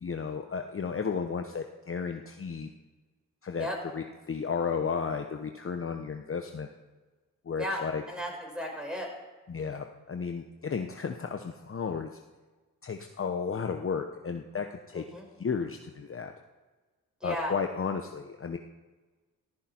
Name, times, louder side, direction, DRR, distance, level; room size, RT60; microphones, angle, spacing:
voice 1, 0.0-2.7 3.4-3.7 3.9-6.7 7.4-8.0 9.5-12.1 12.8-15.0 15.4-16.3 17.2-18.6, left 6 dB, 35° left, 5 dB, 1.0 m, -33 dB
voice 2, 7.6-9.1 14.9-15.3 17.2-17.5, equal, ahead, 0 dB, 5.8 m, -35 dB
14.5 x 13.0 x 4.5 m, 1.3 s
cardioid pair, 65°, 37 cm